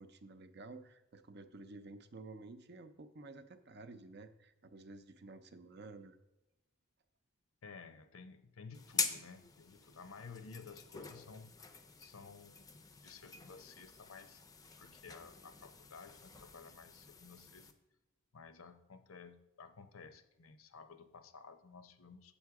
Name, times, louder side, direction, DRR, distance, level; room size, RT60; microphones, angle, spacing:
voice 1, 0.0-6.2, right 3 dB, 50° right, 10 dB, 0.6 m, -52 dB
voice 2, 7.6-14.4 14.8-17.7 18.3-22.4, left 5 dB, 85° left, 10 dB, 0.7 m, -54 dB
sound 1, 8.7-17.7, left 5 dB, 15° left, 0.5 m, -45 dB
7.4 x 7.1 x 4.8 m, 0.97 s
head